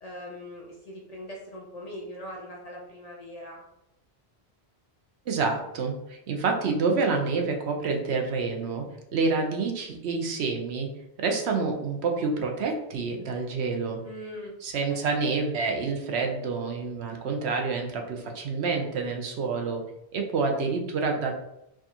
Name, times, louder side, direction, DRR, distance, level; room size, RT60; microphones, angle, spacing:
voice 1, 0.0-3.6 14.0-15.0, equal, 45° left, -1 dB, 0.5 m, -41 dB
voice 2, 5.3-8.9 9.1-10.9 11.2-14.0 14.6-19.8 20.1-21.3, right 4 dB, 75° right, 3 dB, 0.9 m, -28 dB
4.6 x 2.4 x 2.8 m, 0.84 s
omnidirectional pair, 1.1 m